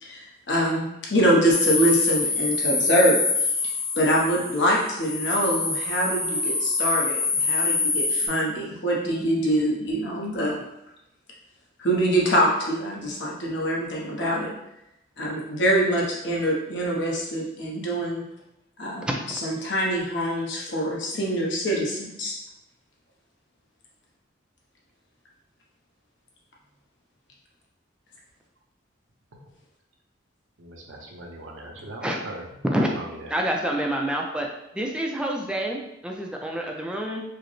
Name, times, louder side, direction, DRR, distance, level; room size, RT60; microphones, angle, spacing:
voice 1, 0.0-3.5 3.9-10.6 11.8-14.5 15.2-18.2 18.8-19.1 19.4-22.3, equal, 65° left, -3 dB, 0.9 m, -24 dB
sound 1, 1.5-8.3, left 3 dB, 85° left, 1.1 m, -25 dB
voice 2, 30.6-32.5 32.9-33.3, right 1 dB, 80° right, 0 dB, 0.7 m, -39 dB
voice 3, 33.3-34.5 34.7-37.2, equal, 5° right, 1 dB, 0.3 m, -27 dB
4.7 x 2.0 x 3.1 m, 0.87 s
head